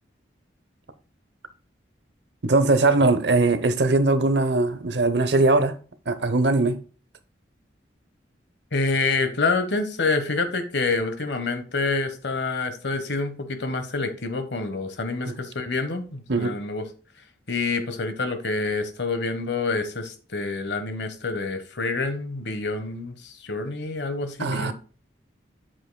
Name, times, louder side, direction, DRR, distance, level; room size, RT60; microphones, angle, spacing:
voice 1, 2.4-5.8 6.1-6.8 15.2-15.3 16.3-16.6 24.4-24.7, right 2 dB, 70° right, 0.8 m, -20 dB
voice 2, 8.7-16.8 17.5-24.7, left 3 dB, 75° left, 1.3 m, -27 dB
8.0 x 7.6 x 2.3 m
head